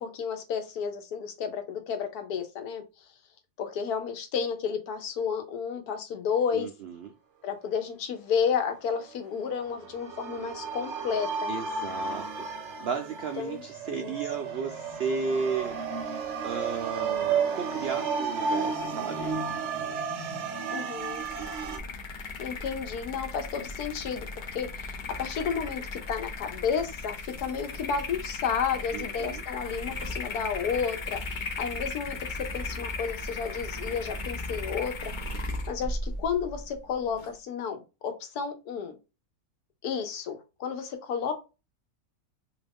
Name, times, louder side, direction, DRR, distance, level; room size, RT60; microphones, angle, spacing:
voice 1, 0.0-2.8 3.6-6.7 7.4-11.5 13.4-13.6 13.9-14.1 20.7-21.2 22.4-35.1 35.7-39.0 39.8-41.3, left 6 dB, 90° left, 7 dB, 1.3 m, -32 dB
voice 2, 6.5-7.1 11.5-19.3 21.4-21.9 28.9-29.4, right 5 dB, 80° right, 6 dB, 0.5 m, -34 dB
sound 1, 9.4-21.8, right 5 dB, 60° right, 0.8 m, -32 dB
sound 2, 21.0-37.3, left 3 dB, 60° left, 0.5 m, -36 dB
2.9 x 2.5 x 3.4 m, 0.28 s
omnidirectional pair, 1.6 m